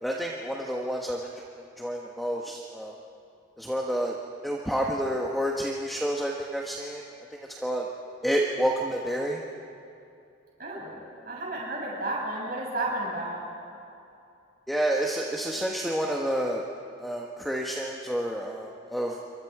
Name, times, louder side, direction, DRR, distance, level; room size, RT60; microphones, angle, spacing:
voice 1, 0.0-1.3 1.8-2.9 3.6-4.2 4.4-7.8 8.2-9.4 14.7-16.6 17.0-19.2, right 1 dB, ahead, -1 dB, 1.2 m, -29 dB
voice 2, 10.6-11.0 11.3-13.4, right 2 dB, 45° right, -4 dB, 7.4 m, -32 dB
27.5 x 24.0 x 4.8 m, 2.6 s
head